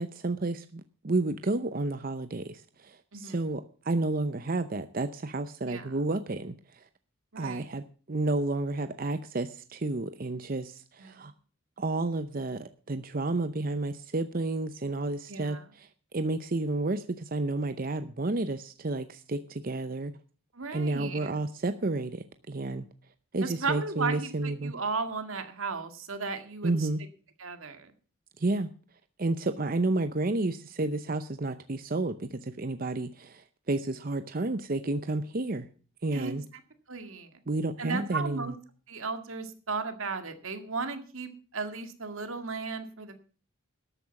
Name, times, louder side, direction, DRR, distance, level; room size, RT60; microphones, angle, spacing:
voice 1, 0.0-6.6 7.4-11.3 11.8-15.9 16.1-20.1 20.7-22.9 23.3-24.7 26.6-27.0 28.4-28.7 29.2-35.7 36.0-36.4 37.5-38.5, right 2 dB, 45° right, 10 dB, 0.7 m, -31 dB
voice 2, 3.1-3.4 5.6-6.0 7.3-7.7 11.0-11.3 15.3-15.6 20.5-21.4 23.4-26.9 27.4-27.9 36.1-36.4 36.9-37.3 37.8-38.5 38.9-43.2, right 4 dB, 90° right, 8 dB, 2.0 m, -35 dB
13.0 x 8.7 x 7.1 m, 0.39 s
head